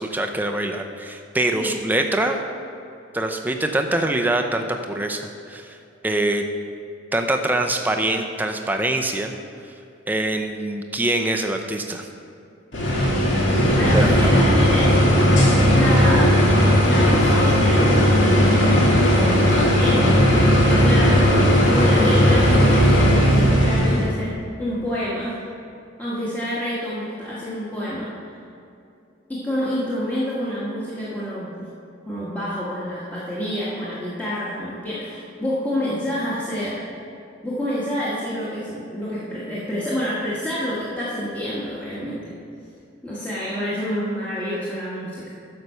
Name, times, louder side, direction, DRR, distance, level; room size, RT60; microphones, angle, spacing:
voice 1, 0.0-2.4 3.1-5.2 5.5-5.7 6.0-6.4 7.1-9.3 10.1-12.1 13.9-14.4, right 1 dB, 10° right, 4 dB, 0.6 m, -24 dB
sound 1, 12.7-24.1, equal, 70° left, 1.9 m, -16 dB
voice 2, 13.7-14.9 15.7-16.3 16.8-21.3 21.7-24.3 24.6-25.4 26.0-28.1 29.3-31.7 32.1-36.8 37.4-42.2 43.0-45.3, equal, 10° left, -10 dB, 1.4 m, -27 dB
9.2 x 6.7 x 5.6 m, 2.6 s
head